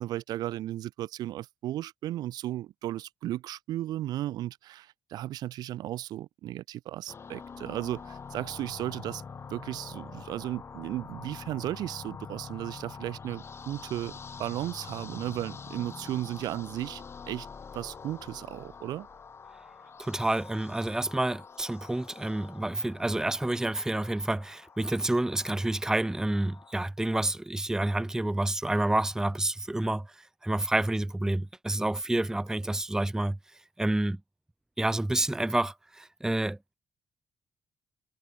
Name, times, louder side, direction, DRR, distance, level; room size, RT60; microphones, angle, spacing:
voice 1, 0.0-9.2 9.5-17.5 17.7-19.1, right 14 dB, 70° right, 0.6 m, -35 dB
sound 1, 7.1-26.8, left 5 dB, 35° left, 0.6 m, -46 dB
voice 2, 20.0-30.1 30.4-33.4 33.8-34.2 34.8-36.7, right 1 dB, 10° right, 0.5 m, -29 dB
hypercardioid pair, 50°, 7 cm